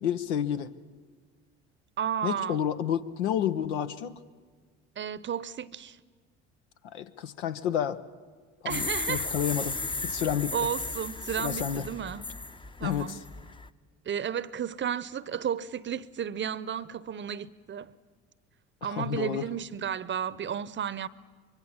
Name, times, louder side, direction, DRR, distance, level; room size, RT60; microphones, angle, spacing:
voice 1, 0.0-0.7 2.2-4.2 6.8-8.0 8.6-9.8 10.0-10.5 11.4-11.9 12.8-13.2 18.8-19.5, left 9 dB, 85° left, 0.9 m, -30 dB
voice 2, 2.0-2.6 5.0-6.0 8.6-9.4 10.5-12.2 12.8-13.2 14.1-17.9 18.8-21.1, right 8 dB, 35° right, 0.8 m, -33 dB
sound 1, 8.7-13.7, left 3 dB, 15° left, 0.7 m, -35 dB
24.5 x 22.5 x 7.3 m
hypercardioid pair, 65°, 33 cm